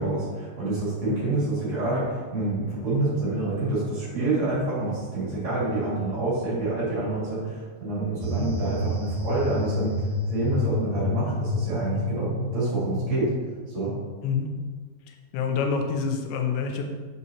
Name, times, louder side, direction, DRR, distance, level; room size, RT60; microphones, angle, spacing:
voice 1, 0.0-13.3 13.7-13.9, right 2 dB, 50° right, -8 dB, 2.7 m, -27 dB
sound 1, 8.2-13.3, left 1 dB, 85° right, 1.7 m, -29 dB
voice 2, 15.1-16.8, left 5 dB, 90° left, 4 dB, 3.0 m, -27 dB
7.0 x 6.4 x 2.8 m, 1.5 s
omnidirectional pair, 5.1 m